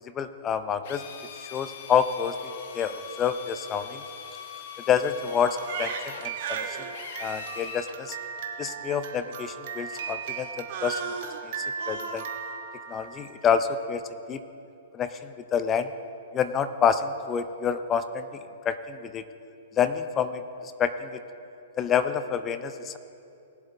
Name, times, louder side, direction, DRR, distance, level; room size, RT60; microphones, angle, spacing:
voice 1, 0.1-1.0 1.5-2.4 2.7-4.0 4.9-6.8 7.2-8.2 8.6-11.0 11.4-12.2 12.9-14.4 14.9-15.9 16.3-18.3 18.6-19.2 19.7-21.2 21.8-23.0, left 7 dB, 25° left, 11 dB, 0.6 m, -28 dB
Drill, 0.8-8.0, left 7 dB, 55° left, 1.1 m, -42 dB
Crying sobbing, 5.3-13.4, right 6 dB, 50° right, 1.2 m, -36 dB
19.0 x 7.7 x 4.0 m, 2.8 s
hypercardioid pair, 120°, 0 cm